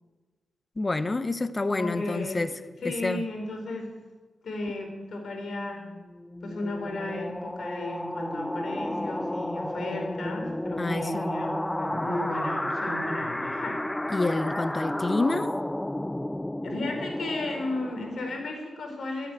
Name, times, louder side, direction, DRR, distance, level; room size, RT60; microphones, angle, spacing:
voice 1, 0.8-2.5 2.8-3.2 10.8-11.3 14.1-15.5, left 2 dB, 30° left, 13 dB, 1.0 m, -28 dB
voice 2, 1.8-2.5 2.8-3.9 4.4-5.8 6.4-13.8 16.6-19.3, left 2 dB, 70° left, 2 dB, 4.6 m, -34 dB
sound 1, 5.8-18.5, left 1 dB, 10° left, 0.4 m, -32 dB
14.0 x 9.2 x 9.1 m, 1.3 s
cardioid pair, 55°, 0 cm